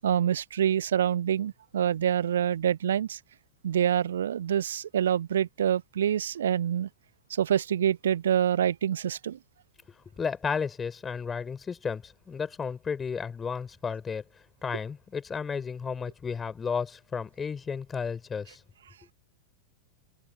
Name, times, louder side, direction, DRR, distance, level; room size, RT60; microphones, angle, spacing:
voice 1, 0.0-3.2 3.6-6.9 7.3-9.4, right 9 dB, 65° right, 0.9 m, -26 dB
voice 2, 10.2-14.2 14.6-18.6, left 6 dB, 20° left, 5.5 m, -33 dB
figure-of-eight pair, 90°, 0 cm